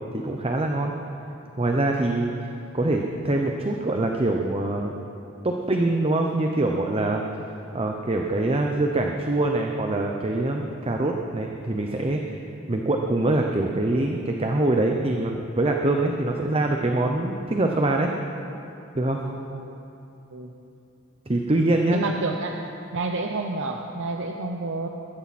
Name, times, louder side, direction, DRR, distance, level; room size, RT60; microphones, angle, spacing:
voice 1, 0.1-0.9 1.6-2.3 2.7-4.9 5.4-7.2 7.7-12.4 12.7-18.1 18.9-19.2 21.3-22.0, right 2 dB, 30° right, 2 dB, 0.8 m, -24 dB
voice 2, 19.2-19.8 20.3-20.5 21.9-22.6 22.9-24.9, right 3 dB, 60° right, 3 dB, 0.8 m, -30 dB
21.0 x 14.5 x 4.3 m, 2.9 s
head